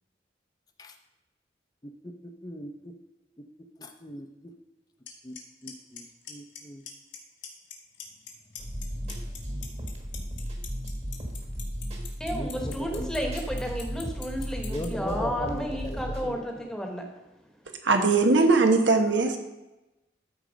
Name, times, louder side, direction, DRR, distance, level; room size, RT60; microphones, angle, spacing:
voice 1, 2.4-2.9 3.8-4.3 5.2-5.3 5.6-6.8 8.7-9.7 12.3-13.1 14.7-16.5, left 1 dB, 20° left, 6 dB, 0.6 m, -39 dB
Clock, 5.1-5.2 5.4-5.7 6.0-6.6 6.9-7.2 7.4-8.3 8.6-14.9, left 11 dB, 85° left, 1.7 m, -41 dB
sound 1, 8.6-16.3, equal, 35° right, 1.5 m, -35 dB
voice 2, 12.2-17.1, equal, 5° left, 3 dB, 1.1 m, -32 dB
voice 3, 17.8-19.4, right 3 dB, 90° right, 5 dB, 1.2 m, -20 dB
13.0 x 4.4 x 5.1 m, 1.0 s
head